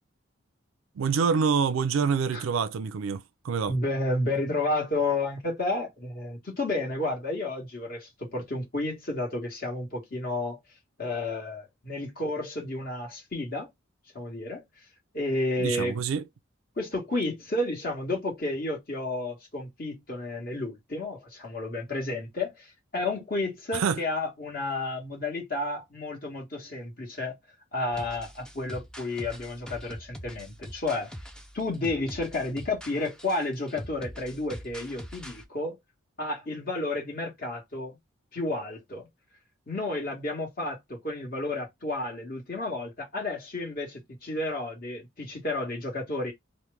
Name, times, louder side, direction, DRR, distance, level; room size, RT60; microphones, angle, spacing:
voice 1, 1.0-3.7 15.6-16.2 23.7-24.0, right 6 dB, 85° right, 0.4 m, -26 dB
voice 2, 3.7-10.6 11.0-13.7 14.1-14.6 15.1-16.0 16.8-27.3 27.7-31.1 31.5-35.8 36.2-38.0 38.3-39.1 39.7-46.3, left 2 dB, 45° left, 1.4 m, -31 dB
sound 1, 27.9-35.5, equal, 5° left, 0.3 m, -44 dB
3.0 x 2.1 x 3.3 m
head